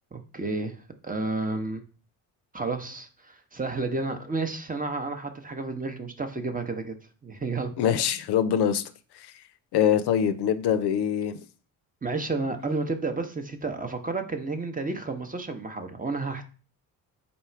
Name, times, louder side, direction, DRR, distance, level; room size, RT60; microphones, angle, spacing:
voice 1, 0.1-1.8 2.5-7.0 7.2-7.7 12.0-16.4, right 3 dB, 20° right, 0.7 m, -31 dB
voice 2, 7.8-8.8 9.1-9.3 9.7-11.4, left 9 dB, 65° left, 0.5 m, -24 dB
4.0 x 2.3 x 4.4 m
supercardioid pair, 55°, 42 cm